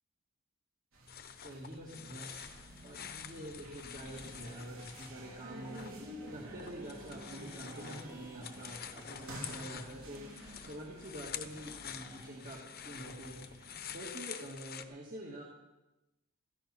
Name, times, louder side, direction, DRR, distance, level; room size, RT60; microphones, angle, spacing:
sound 1, 0.9-14.3, right 1 dB, 70° right, 4.0 m, -51 dB
sound 2, 1.1-5.9 6.2-14.8, left 9 dB, 45° left, 0.9 m, -48 dB
voice 1, 1.4-2.3 2.8-5.9 6.3-10.2 10.6-13.4 13.9-15.4, right 1 dB, 40° right, -2 dB, 2.1 m, -46 dB
sound 3, 2.4-14.5, right 1 dB, 15° right, 2.0 m, -57 dB
16.0 x 14.5 x 4.4 m, 1.0 s
head